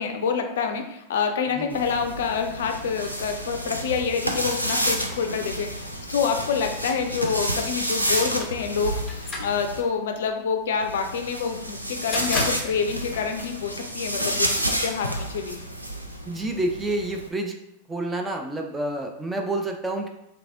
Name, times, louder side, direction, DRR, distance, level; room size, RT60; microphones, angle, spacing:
voice 1, 0.0-15.6, left 6 dB, 60° left, 5 dB, 0.4 m, -27 dB
sound 1, 1.7-9.8 10.8-17.3, equal, 90° right, 0.4 m, -30 dB
sound 2, 8.1-14.2, left 2 dB, 20° left, 0.8 m, -35 dB
voice 2, 16.3-17.5 17.9-20.1, right 2 dB, 10° right, 2 dB, 0.5 m, -28 dB
3.4 x 3.1 x 2.5 m, 0.82 s
figure-of-eight pair, 90°, 0 cm